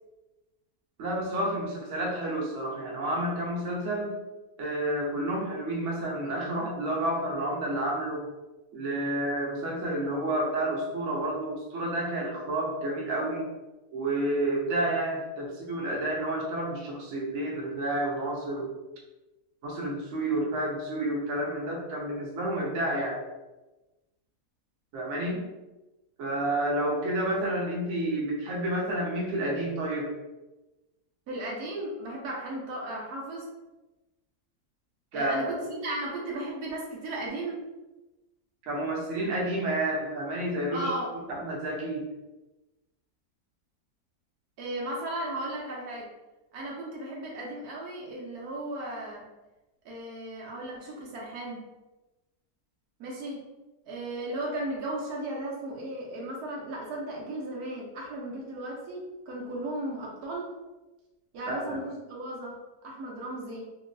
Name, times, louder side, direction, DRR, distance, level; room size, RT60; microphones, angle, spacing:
voice 1, 1.0-4.1 4.6-8.2 8.7-13.5 13.9-18.7 19.6-23.2 24.9-25.4 26.2-30.1 35.1-35.5 38.7-40.9 41.3-42.0 61.5-61.6, right 1 dB, 60° right, -2 dB, 0.9 m, -30 dB
voice 2, 31.3-33.5 35.1-37.6 40.7-41.1 44.6-46.1 46.5-49.3 49.8-51.6 53.0-53.5 53.9-60.5 61.3-63.6, right 1 dB, 80° right, -3 dB, 1.2 m, -35 dB
3.0 x 2.6 x 2.5 m, 1.1 s
omnidirectional pair, 1.7 m